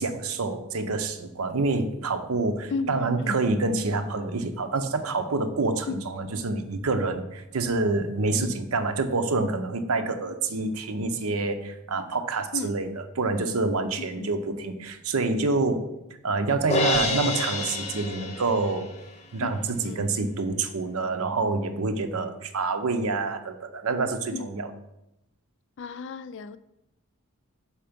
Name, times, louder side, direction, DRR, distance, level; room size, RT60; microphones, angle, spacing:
voice 1, 0.0-15.9 16.2-18.9 19.3-24.7, right 3 dB, 75° right, 9 dB, 0.7 m, -27 dB
voice 2, 2.7-3.4 5.9-6.0 8.4-8.6 12.5-12.7 14.1-14.3 19.4-20.0 24.3-24.5 25.8-26.6, left 4 dB, 55° left, 14 dB, 0.3 m, -34 dB
Crash cymbal, 16.7-19.0, left 2 dB, 30° left, 0.7 m, -28 dB
5.8 x 4.8 x 5.1 m, 0.88 s
head